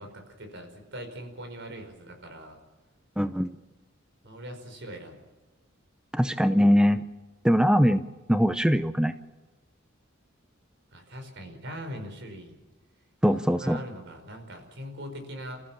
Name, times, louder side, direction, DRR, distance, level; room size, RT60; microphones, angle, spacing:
voice 1, 0.0-2.6 4.2-5.2 10.9-12.5 13.5-15.6, equal, 60° right, 6 dB, 5.0 m, -41 dB
voice 2, 3.2-3.6 6.1-7.0 7.4-9.1 13.2-13.8, equal, 5° right, 10 dB, 0.6 m, -22 dB
29.5 x 15.0 x 7.2 m, 1.2 s
head